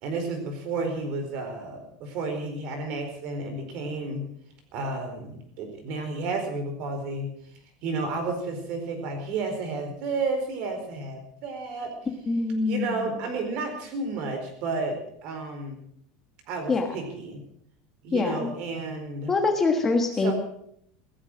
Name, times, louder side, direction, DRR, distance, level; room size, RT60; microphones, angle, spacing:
voice 1, 0.0-4.3 4.7-7.3 7.8-11.9 12.7-15.8 16.5-17.4 18.0-19.3 20.2-20.3, right 3 dB, 40° right, 6 dB, 4.5 m, -31 dB
voice 2, 12.3-13.2 16.7-16.9 18.1-18.5 19.3-20.3, left 3 dB, 15° left, 4 dB, 1.4 m, -24 dB
16.5 x 14.0 x 6.3 m, 0.67 s
supercardioid pair, 175°, 2 cm